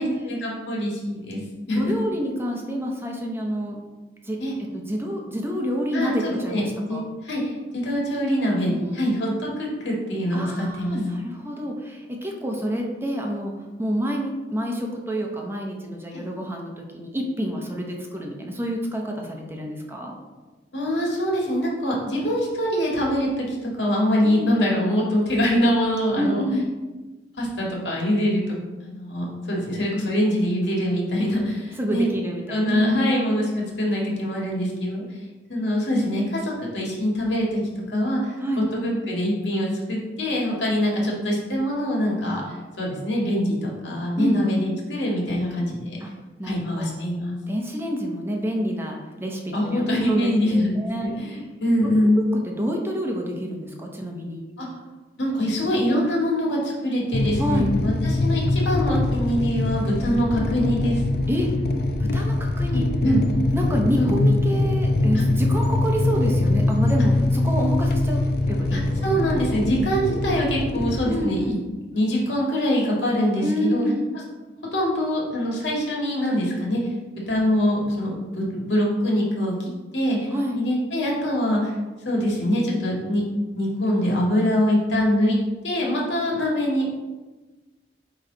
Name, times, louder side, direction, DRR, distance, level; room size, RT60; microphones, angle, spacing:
voice 1, 0.0-1.4 1.7-1.8 4.4-4.5 5.9-6.6 6.9-11.0 16.1-16.2 20.7-26.4 27.4-28.4 28.8-32.1 32.5-35.0 35.5-37.6 37.9-38.2 38.6-42.4 42.8-46.0 46.4-47.4 49.5-52.2 54.6-54.7 55.2-61.0 62.7-63.2 64.0-64.1 65.1-65.2 68.7-71.5 71.9-73.8 74.7-76.8 77.1-81.7 82.1-83.2 83.5-85.4 85.6-86.9, equal, 85° left, -3 dB, 1.9 m, -24 dB
voice 2, 1.7-3.8 4.2-4.4 4.7-7.1 8.7-9.1 10.3-13.5 13.8-20.1 24.2-24.6 26.2-26.7 31.8-33.2 38.4-38.7 44.2-44.4 46.0-46.1 46.4-47.0 47.5-51.1 52.2-54.5 57.4-57.7 61.3-61.5 62.0-62.8 63.5-69.4 71.1-71.6 73.4-74.1 80.3-80.6, equal, 15° right, 0 dB, 0.8 m, -28 dB
sound 1, 57.1-71.2, left 2 dB, 60° left, 0.5 m, -23 dB
8.8 x 3.2 x 3.9 m, 1.2 s
head